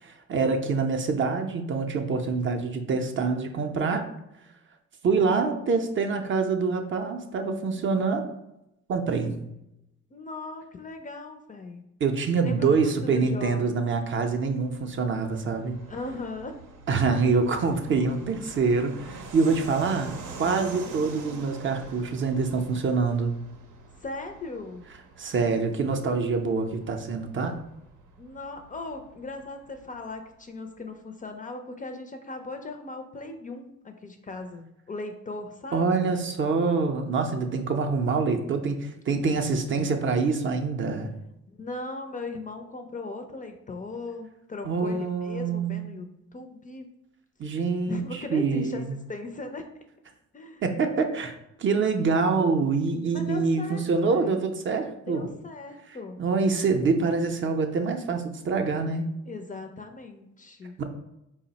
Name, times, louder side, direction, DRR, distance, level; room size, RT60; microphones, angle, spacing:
voice 1, 0.0-4.1 5.0-8.3 8.9-9.4 12.0-15.8 16.9-23.3 25.2-27.6 35.7-41.1 44.6-45.8 47.4-48.8 50.6-51.3 51.6-55.3 56.2-59.1 60.8-60.9, right 4 dB, 40° right, 5 dB, 0.5 m, -25 dB
voice 2, 5.1-5.8 10.1-11.8 12.4-13.8 15.9-16.6 20.9-21.4 24.0-24.8 28.2-36.0 39.7-39.9 41.5-46.1 46.3-46.9 47.9-49.7 50.3-50.6 51.1-51.2 53.1-54.3 55.1-56.2 59.2-60.8, left 3 dB, 25° left, 5 dB, 0.4 m, -38 dB
Fixed-wing aircraft airplane, 14.3-30.4, right 4 dB, 80° right, 0.6 m, -46 dB
4.0 x 2.0 x 3.9 m, 0.85 s
cardioid pair, 90°, 30 cm